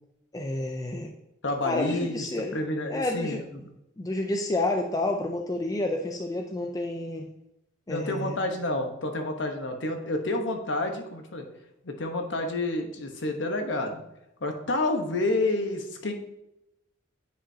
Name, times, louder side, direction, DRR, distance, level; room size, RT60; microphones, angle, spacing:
voice 1, 0.3-1.1 1.6-2.6 2.9-3.4 4.0-7.3 7.9-8.4, left 2 dB, 15° left, 3 dB, 0.4 m, -29 dB
voice 2, 1.4-2.3 2.5-3.4 7.9-11.5 11.8-14.0 14.4-16.1, left 2 dB, 60° left, 4 dB, 1.0 m, -29 dB
10.0 x 4.9 x 2.8 m, 0.87 s
head